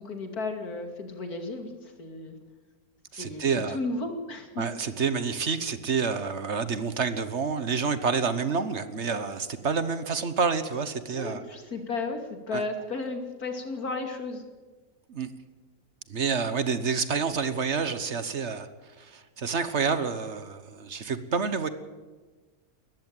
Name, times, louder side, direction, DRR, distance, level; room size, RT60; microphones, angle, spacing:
voice 1, 0.0-2.4 3.2-4.6 11.1-14.4, left 3 dB, 90° left, 5 dB, 3.0 m, -34 dB
voice 2, 3.1-3.8 4.6-11.4 12.5-12.6 15.1-15.3 16.1-18.7 19.0-21.7, right 5 dB, 50° right, 12 dB, 1.4 m, -28 dB
20.0 x 14.5 x 9.1 m, 1.4 s
omnidirectional pair, 1.5 m